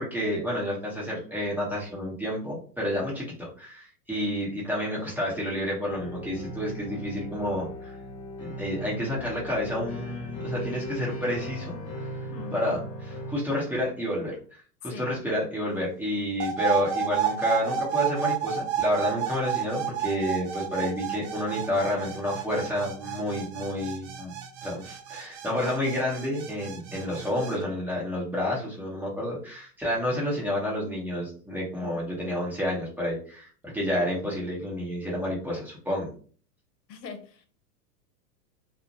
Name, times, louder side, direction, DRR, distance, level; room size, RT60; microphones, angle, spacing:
voice 1, 0.0-8.0 8.4-12.1 12.5-24.3 24.6-36.1, left 1 dB, 5° right, 0.7 m, -30 dB
sound 1, 5.9-13.3, equal, 30° left, 1.3 m, -38 dB
sound 2, 16.4-27.6, right 9 dB, 45° right, 0.5 m, -31 dB
voice 2, 36.9-37.4, left 5 dB, 80° left, 0.7 m, -41 dB
2.3 x 2.0 x 2.6 m
hypercardioid pair, 100°, 49 cm